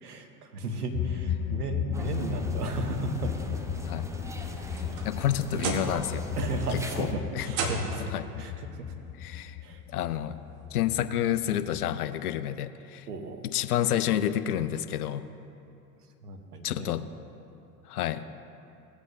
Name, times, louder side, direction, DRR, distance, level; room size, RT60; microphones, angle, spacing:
voice 1, 0.0-3.5 4.1-4.2 4.8-5.2 6.4-8.9 9.6-9.8 13.1-13.4 16.2-17.0, right 3 dB, 80° right, 5 dB, 1.0 m, -35 dB
sound 1, 0.9-11.9, left 9 dB, 35° left, 0.5 m, -36 dB
sound 2, 1.9-7.1, equal, 5° right, 0.7 m, -40 dB
sound 3, 4.5-6.1 6.4-6.8 7.5-8.2 9.4-9.5 10.1-10.2 11.8-11.9, right 2 dB, 60° right, 1.3 m, -33 dB
voice 2, 5.0-6.3 6.7-7.1 7.3-7.5 8.1-8.2 9.2-9.6 9.9-10.4 10.7-13.1 13.4-15.3 16.6-17.0 17.9-18.2, left 11 dB, 75° left, 12 dB, 0.6 m, -29 dB
16.5 x 8.2 x 2.7 m, 2.7 s
figure-of-eight pair, 75°, 45 cm